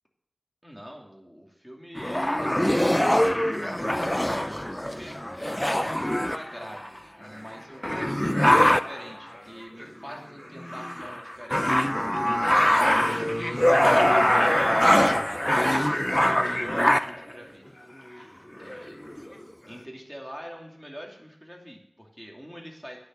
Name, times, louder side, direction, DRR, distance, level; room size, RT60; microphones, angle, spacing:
voice 1, 0.6-3.6 4.2-5.1 5.5-17.7 18.6-19.3 19.7-23.0, equal, ahead, 0 dB, 2.7 m, -44 dB
sound 1, 2.0-7.0 7.5-7.6 7.8-9.1 9.8-10.2 10.6-17.3 18.1-18.2 18.6-19.3, equal, 15° left, 0.5 m, -23 dB
9.6 x 6.8 x 6.4 m, 0.73 s
wide cardioid pair, 45°, 0 cm